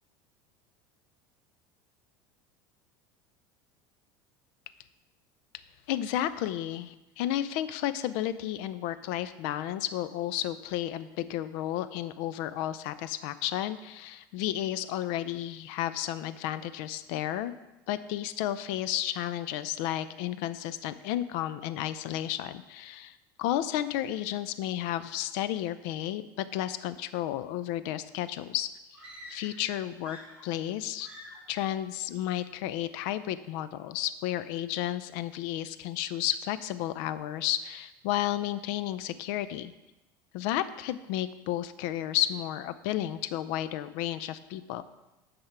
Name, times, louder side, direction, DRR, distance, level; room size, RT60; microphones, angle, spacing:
voice 1, 5.9-17.5 17.9-28.7 29.3-30.2 30.4-31.1 31.5-39.7 40.3-44.8, left 12 dB, 70° left, 13 dB, 0.5 m, -32 dB
sound 1, 28.9-29.7 30.0-30.7 31.0-31.5, equal, 10° right, 2.5 m, -48 dB
9.9 x 3.6 x 5.9 m, 1.0 s
hypercardioid pair, 90°, 11 cm